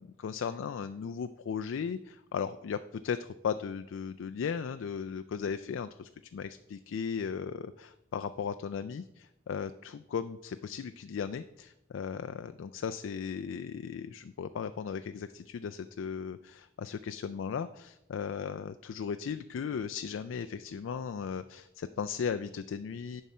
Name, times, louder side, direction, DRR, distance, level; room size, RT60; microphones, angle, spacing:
voice 1, 0.0-23.2, left 6 dB, 85° left, 10 dB, 0.3 m, -36 dB
11.0 x 5.6 x 4.2 m, 0.88 s
head